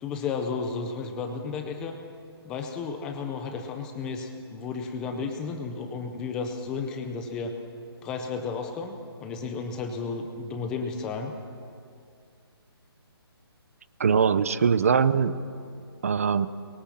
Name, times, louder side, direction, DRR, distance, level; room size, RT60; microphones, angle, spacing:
voice 1, 0.0-2.0 2.4-7.5 8.0-11.3, left 4 dB, 5° left, 5 dB, 0.5 m, -33 dB
voice 2, 14.0-15.4 16.0-16.5, right 6 dB, 35° right, 15 dB, 0.7 m, -22 dB
25.0 x 22.0 x 7.4 m, 2.4 s
hypercardioid pair, 175°, 13 cm